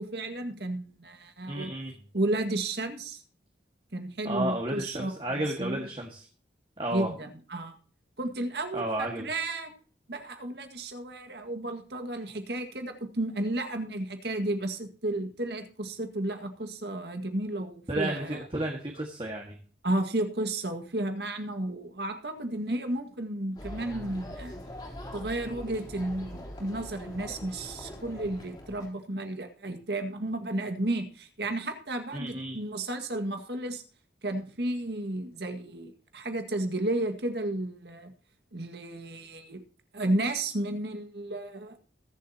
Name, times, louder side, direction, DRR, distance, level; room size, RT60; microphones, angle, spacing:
voice 1, 0.0-1.7 2.1-3.2 3.9-5.9 6.9-7.8 8.2-9.7 10.1-18.4 19.8-24.6 25.1-33.8 34.2-38.1 38.5-39.6 39.9-41.8, right 1 dB, 65° right, 6 dB, 1.9 m, -33 dB
voice 2, 1.5-1.9 4.2-6.3 6.8-7.1 8.7-9.3 17.9-19.6 32.1-32.6, right 1 dB, 30° right, 1 dB, 1.7 m, -32 dB
sound 1, 23.5-28.9, equal, 25° left, 3.5 m, -42 dB
21.5 x 7.6 x 2.9 m, 0.41 s
head